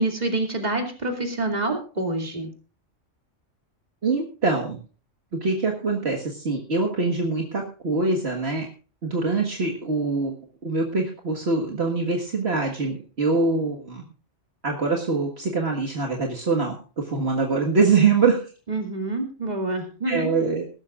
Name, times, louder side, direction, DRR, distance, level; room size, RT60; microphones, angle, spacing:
voice 1, 0.0-2.5 18.7-20.3, right 2 dB, 35° right, 3 dB, 2.7 m, -27 dB
voice 2, 4.0-4.8 5.4-8.7 9.0-10.3 10.6-14.0 14.6-18.4 20.1-20.6, right 4 dB, 60° right, 0 dB, 2.0 m, -24 dB
21.0 x 12.0 x 2.5 m, 0.37 s
omnidirectional pair, 1.3 m